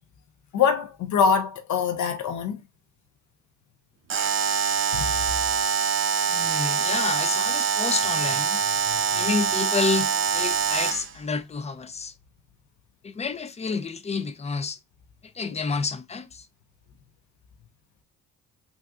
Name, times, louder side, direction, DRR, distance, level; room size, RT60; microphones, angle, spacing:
voice 1, 0.5-2.6 4.9-5.1 8.9-9.2 15.5-15.6, left 6 dB, 70° left, 0.8 m, -24 dB
Alarm, 4.1-11.1, right 7 dB, 45° right, 0.6 m, -24 dB
voice 2, 6.3-8.6 9.1-12.1 13.0-14.8 15.4-16.4, left 4 dB, 20° left, 0.5 m, -29 dB
3.6 x 2.6 x 2.4 m
cardioid pair, 90°, 30 cm